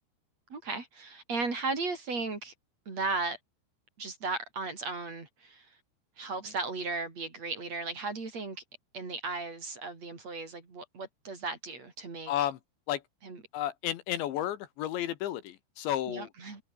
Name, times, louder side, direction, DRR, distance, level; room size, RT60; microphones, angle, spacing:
voice 1, 0.5-2.5 2.9-3.4 4.0-5.7 6.2-8.6 8.9-12.3 13.2-13.4 16.1-16.6, right 3 dB, 35° right, 5.3 m, -36 dB
voice 2, 12.3-12.6 12.9-13.0 13.5-16.3, left 12 dB, 75° left, 3.6 m, -32 dB
omnidirectional pair, 5.5 m